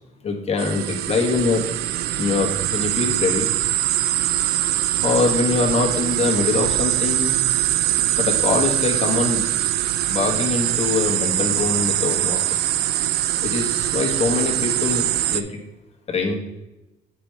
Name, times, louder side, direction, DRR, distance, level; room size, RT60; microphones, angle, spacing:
voice 1, 0.2-1.6 2.2-3.5 5.0-7.3 8.1-9.5 10.1-12.6 13.4-15.6 16.1-16.4, left 4 dB, 35° left, 0 dB, 1.5 m, -23 dB
sound 1, 0.6-15.4, right 13 dB, 70° right, 0.4 m, -22 dB
8.6 x 4.7 x 3.4 m, 0.98 s
cardioid pair, 110°, 17 cm